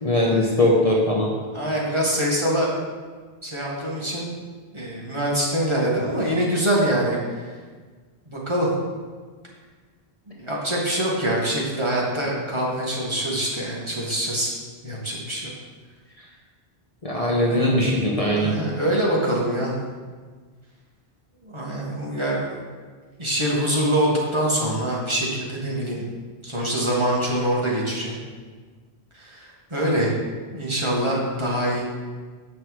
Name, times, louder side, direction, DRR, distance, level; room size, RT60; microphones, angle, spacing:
voice 1, 0.0-1.3 17.0-18.6, left 1 dB, 35° left, -3 dB, 1.1 m, -20 dB
voice 2, 1.5-2.7 3.4-4.3 4.7-7.5 8.3-8.7 10.4-14.5 14.8-15.5 18.2-19.8 21.4-22.5 23.2-26.0 26.4-28.2 29.2-30.1 30.5-31.8, right 1 dB, 25° right, -5 dB, 1.7 m, -24 dB
7.7 x 6.2 x 4.8 m, 1.5 s
omnidirectional pair, 1.1 m